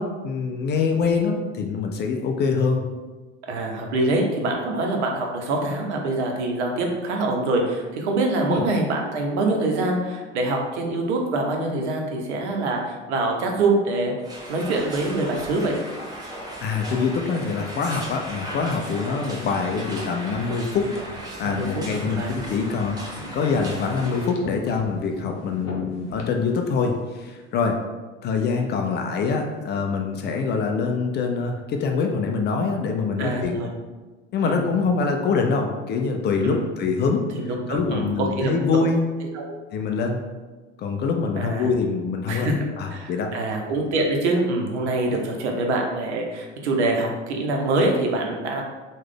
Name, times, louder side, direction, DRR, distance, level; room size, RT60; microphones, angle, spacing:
voice 1, 0.0-2.8 8.5-8.6 16.6-20.9 21.4-27.8 28.2-33.6 34.3-37.2 37.7-39.0 39.7-40.2 40.8-42.5 42.8-43.3, left 5 dB, 30° left, 3 dB, 0.4 m, -24 dB
voice 2, 3.4-14.1 14.5-15.8 21.4-21.8 22.1-22.3 33.2-33.7 34.4-34.6 36.4-36.7 37.3-38.5 39.3-39.5 41.4-41.7 42.3-42.6 42.9-48.6, right 2 dB, 70° right, 1 dB, 0.7 m, -25 dB
sound 1, 14.2-24.3, right 1 dB, 10° right, 0.9 m, -37 dB
sound 2, 19.2-27.4, left 1 dB, 45° left, 0.7 m, -42 dB
3.1 x 2.3 x 3.6 m, 1.3 s
figure-of-eight pair, 60°, 35 cm